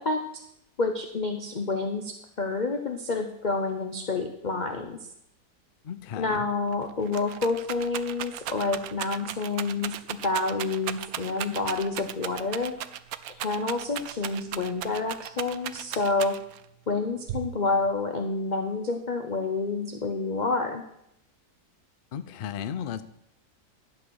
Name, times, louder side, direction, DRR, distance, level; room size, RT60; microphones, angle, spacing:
voice 1, 0.0-0.4 0.8-5.0 6.2-12.7 13.4-16.3 16.9-20.8, left 3 dB, 40° left, 5 dB, 0.7 m, -28 dB
voice 2, 5.8-6.5 22.1-23.0, left 8 dB, 90° left, 13 dB, 0.4 m, -34 dB
Rattle, 6.3-6.4 6.7-16.7 17.3-17.9, right 12 dB, 70° right, 1.0 m, -36 dB
11.5 x 8.5 x 6.4 m, 0.77 s
omnidirectional pair, 1.8 m